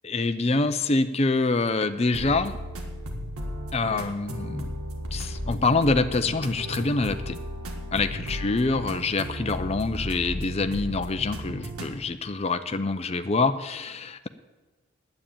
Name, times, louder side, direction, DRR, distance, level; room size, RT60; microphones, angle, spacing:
voice 1, 0.0-2.6 3.7-4.7 5.1-7.4 7.9-14.3, left 3 dB, 30° left, 10 dB, 0.5 m, -25 dB
sound 1, 2.1-11.9, equal, 85° right, 1.8 m, -35 dB
9.5 x 8.9 x 8.6 m, 1.2 s
head